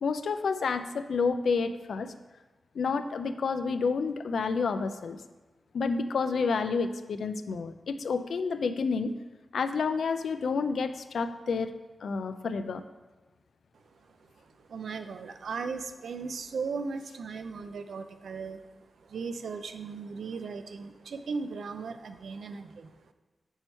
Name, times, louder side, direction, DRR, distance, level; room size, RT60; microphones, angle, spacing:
voice 1, 0.0-2.1 2.7-5.2 5.7-9.1 9.5-11.7 12.0-12.8, left 5 dB, 75° left, 10 dB, 0.3 m, -29 dB
voice 2, 14.2-23.1, right 4 dB, 80° right, 9 dB, 0.4 m, -37 dB
5.4 x 4.5 x 4.4 m, 1.3 s
wide cardioid pair, 155°, 0 cm